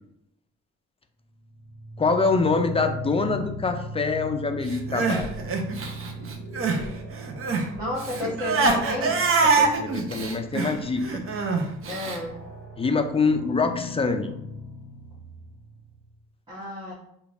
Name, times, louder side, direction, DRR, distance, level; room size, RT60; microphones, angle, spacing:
sound 1, 1.4-16.0, right 1 dB, 75° right, 1.3 m, -39 dB
voice 1, 2.0-5.3 9.4-11.2 12.8-14.3, left 4 dB, 20° left, 7 dB, 0.4 m, -25 dB
Crying sobbing, 4.7-6.9 7.1-12.2, right 4 dB, 45° right, 0.6 m, -25 dB
voice 2, 7.8-9.2 11.9-12.4 16.5-16.9, left 1 dB, 15° right, -7 dB, 1.0 m, -31 dB
5.0 x 2.4 x 2.4 m, 0.77 s
cardioid pair, 90°, 30 cm